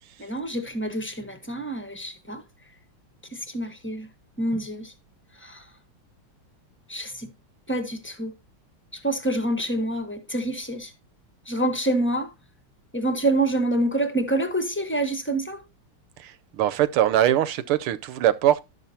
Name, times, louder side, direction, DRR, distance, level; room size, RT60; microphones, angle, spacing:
voice 1, 0.2-2.4 3.3-4.1 4.4-4.9 5.4-5.6 6.9-7.3 7.7-8.3 8.9-10.9 11.5-12.3 12.9-15.6, right 1 dB, 10° left, 0.8 m, -27 dB
voice 2, 16.2-18.6, right 12 dB, 90° right, 1.7 m, -22 dB
12.0 x 7.3 x 2.8 m
omnidirectional pair, 2.4 m